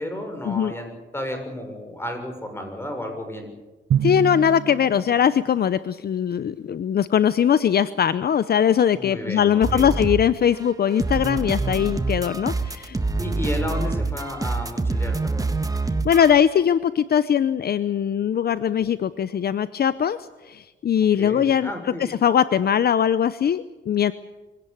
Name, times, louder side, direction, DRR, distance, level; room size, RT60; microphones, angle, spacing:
voice 1, 0.0-3.5 8.9-10.0 13.2-15.5 21.2-22.1, left 1 dB, 10° left, 5 dB, 6.7 m, -32 dB
Drum, 3.9-5.6, right 8 dB, 65° right, 0.9 m, -26 dB
voice 2, 4.0-13.0 16.0-20.2 20.4-21.7 22.0-24.1, left 8 dB, 55° left, 14 dB, 0.8 m, -21 dB
sound 1, 9.6-10.3 10.5-16.3, right 3 dB, 20° right, 1.6 m, -26 dB
24.5 x 17.5 x 8.7 m, 1.2 s
cardioid pair, 100°, 19 cm